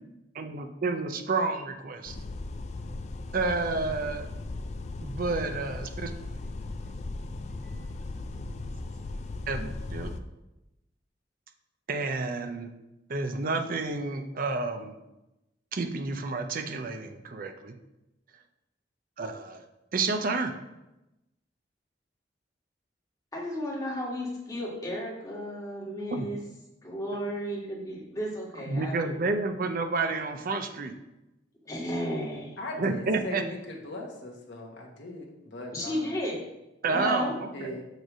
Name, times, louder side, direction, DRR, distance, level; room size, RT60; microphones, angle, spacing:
voice 1, 0.3-2.2 3.3-4.3 5.0-6.1 9.5-10.1 11.9-12.7 13.1-15.0 15.7-17.7 19.2-19.7 19.9-20.6 26.1-26.3 28.7-30.9 32.8-33.4 36.8-37.8, right 3 dB, 50° right, 6 dB, 0.6 m, -30 dB
sound 1, 2.1-10.2, left 2 dB, 40° left, 0.4 m, -37 dB
voice 2, 23.3-26.4 26.8-29.3 31.6-32.6 35.7-36.4 36.8-37.4, equal, 20° left, -4 dB, 1.7 m, -33 dB
voice 3, 32.6-36.0 37.5-37.8, left 2 dB, 80° left, 0 dB, 1.2 m, -39 dB
6.5 x 3.3 x 6.1 m, 0.94 s
head